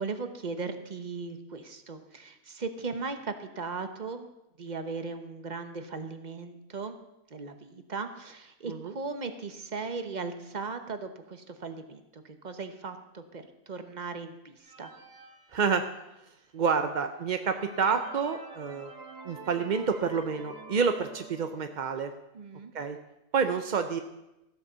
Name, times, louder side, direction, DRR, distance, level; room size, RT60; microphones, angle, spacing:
voice 1, 0.0-4.3 4.6-7.0 7.3-14.9 22.3-22.7, right 4 dB, 35° right, 8 dB, 0.9 m, -38 dB
sound 1, 14.6-16.2 16.8-16.9 17.3-21.8, right 3 dB, 80° right, 1.9 m, -47 dB
voice 2, 15.5-15.8 16.5-18.9 19.2-22.1 22.7-23.0 23.3-24.0, right 5 dB, 50° right, 7 dB, 0.5 m, -28 dB
14.5 x 8.2 x 6.7 m, 0.93 s
omnidirectional pair, 1.7 m